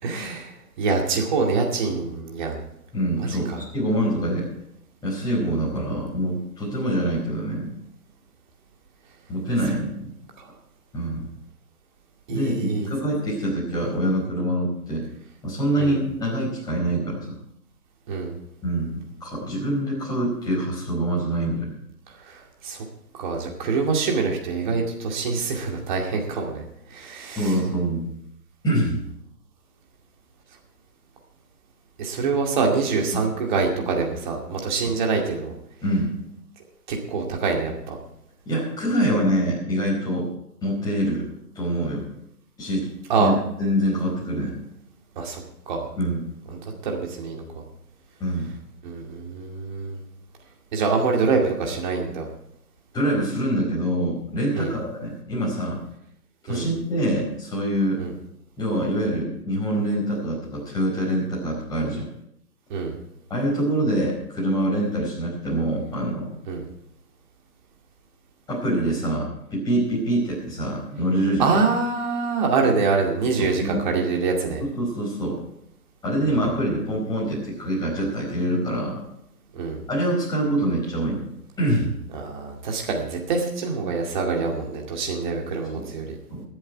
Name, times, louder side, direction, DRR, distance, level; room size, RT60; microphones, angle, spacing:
voice 1, 0.0-2.6 3.2-3.6 12.3-12.9 15.8-16.0 18.1-18.3 22.2-22.8 23.1-26.6 26.9-27.5 32.0-35.5 36.9-38.0 43.1-43.3 45.2-45.4 45.7-45.9 46.5-47.4 48.8-50.0 50.7-52.3 54.5-54.8 56.5-56.7 58.0-58.1 62.7-62.9 66.5-66.6 71.4-74.6 79.5-79.8 82.1-86.2, right 4 dB, 30° right, 1 dB, 2.3 m, -25 dB
voice 2, 2.9-4.5 5.0-7.7 9.3-10.1 10.9-11.2 12.3-15.0 15.4-17.3 18.6-21.7 27.4-28.1 28.6-29.0 35.8-36.1 38.4-40.3 40.6-41.3 41.5-42.1 42.6-42.9 43.2-44.5 46.0-46.2 48.2-48.5 52.9-55.8 56.5-58.0 58.6-62.1 63.3-66.3 68.5-71.5 73.4-73.9 74.6-75.4 76.0-79.0 79.9-81.3 81.6-81.9 85.8-85.9 86.3-86.4, right 1 dB, 10° left, -5 dB, 4.7 m, -25 dB
22.5 x 7.9 x 4.7 m, 0.77 s
figure-of-eight pair, 140°, 47 cm